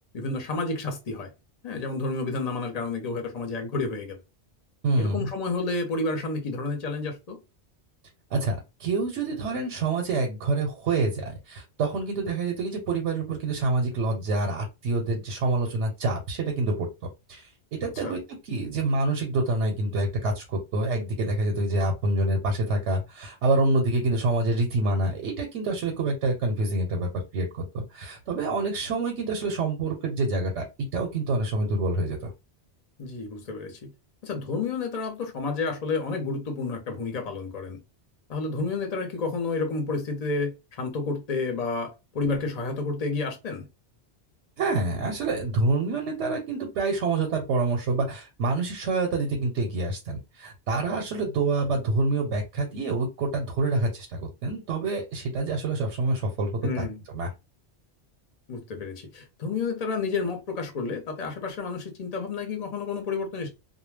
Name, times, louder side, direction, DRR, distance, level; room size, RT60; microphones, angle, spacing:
voice 1, 0.1-1.3 1.6-4.2 5.0-7.4 17.8-18.2 33.0-33.9 34.2-37.8 38.3-43.7 56.6-57.0 58.5-63.5, left 3 dB, 40° left, 0.7 m, -30 dB
voice 2, 4.8-5.3 8.3-16.9 17.3-18.2 18.4-30.6 30.9-32.3 44.6-56.9 57.1-57.3, right 2 dB, 90° right, 1.0 m, -27 dB
2.2 x 2.1 x 3.2 m
omnidirectional pair, 1.2 m